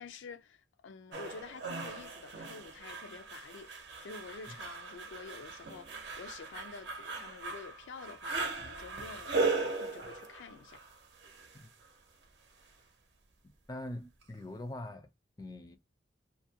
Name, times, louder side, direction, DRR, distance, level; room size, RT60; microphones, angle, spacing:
voice 1, 0.0-10.8, left 5 dB, 85° left, 0.4 m, -49 dB
sound 1, 1.1-11.9 14.2-14.3, right 3 dB, 70° right, 0.7 m, -38 dB
voice 2, 13.4-15.1 15.4-15.8, left 1 dB, 20° left, 0.4 m, -43 dB
2.4 x 2.1 x 2.7 m
head